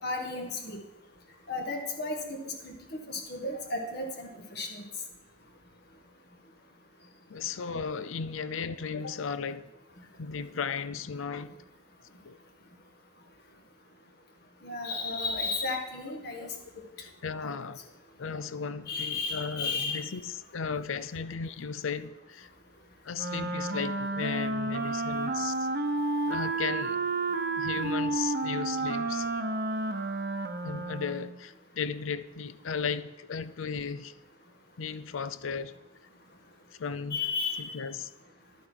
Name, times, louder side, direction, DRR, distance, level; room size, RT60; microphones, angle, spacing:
voice 1, 0.0-0.8 1.5-4.8 14.6-16.5 17.4-17.5 18.9-20.1 37.1-37.7, left 3 dB, 50° left, 1.7 m, -34 dB
voice 2, 7.3-9.7 10.2-11.5 12.2-12.4 16.1-16.5 17.0-17.8 18.2-22.5 23.0-25.7 26.3-27.0 27.6-29.3 30.6-34.2 34.8-35.8 36.8-37.2 37.6-38.1, left 5 dB, 75° left, 0.6 m, -35 dB
Wind instrument woodwind instrument, 23.1-31.4, right 2 dB, 50° right, 0.9 m, -31 dB
11.5 x 9.0 x 4.6 m
head